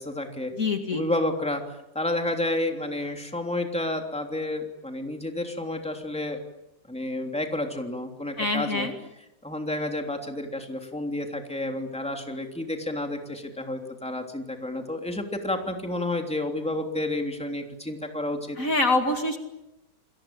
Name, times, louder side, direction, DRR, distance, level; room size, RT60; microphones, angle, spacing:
voice 1, 0.0-0.5 0.9-1.6 1.9-6.4 6.9-8.9 9.4-18.6, left 1 dB, 5° left, 3 dB, 3.1 m, -30 dB
voice 2, 0.6-1.0 8.4-8.9 18.6-19.4, left 2 dB, 50° left, 5 dB, 2.7 m, -25 dB
29.5 x 22.5 x 8.9 m, 0.89 s
omnidirectional pair, 1.9 m